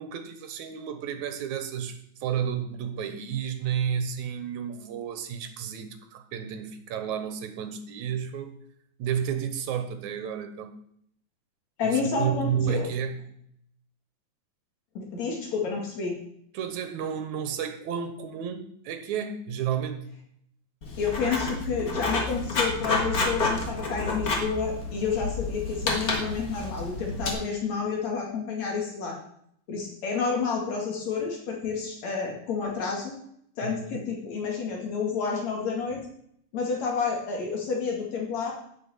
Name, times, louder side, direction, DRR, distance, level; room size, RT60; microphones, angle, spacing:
voice 1, 0.0-8.5 9.0-10.7 11.8-13.2 16.5-20.1 33.6-34.0, right 8 dB, 85° right, 8 dB, 2.6 m, -31 dB
voice 2, 11.8-12.9 15.0-16.1 21.0-29.2 29.7-33.1 33.6-36.0 36.5-38.5, left 5 dB, 65° left, 0 dB, 3.5 m, -29 dB
Writing, 20.8-27.3, left 3 dB, 35° left, 1.8 m, -30 dB
9.3 x 8.1 x 7.2 m, 0.69 s
omnidirectional pair, 3.3 m